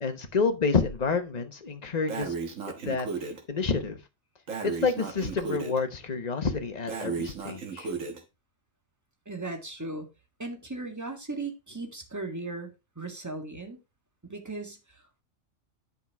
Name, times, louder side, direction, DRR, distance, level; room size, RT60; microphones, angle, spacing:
voice 1, 0.0-2.3 2.8-3.1 3.5-4.0 4.6-7.9, left 4 dB, 35° left, 7 dB, 1.2 m, -28 dB
Breathing, 2.1-3.4 4.5-5.8 6.9-8.2, right 5 dB, 85° right, 1.8 m, -34 dB
voice 2, 9.3-10.1 10.4-12.7 13.0-13.8 14.2-15.2, right 2 dB, 15° right, 4 dB, 1.7 m, -37 dB
10.0 x 5.6 x 3.5 m, 0.26 s
omnidirectional pair, 1.3 m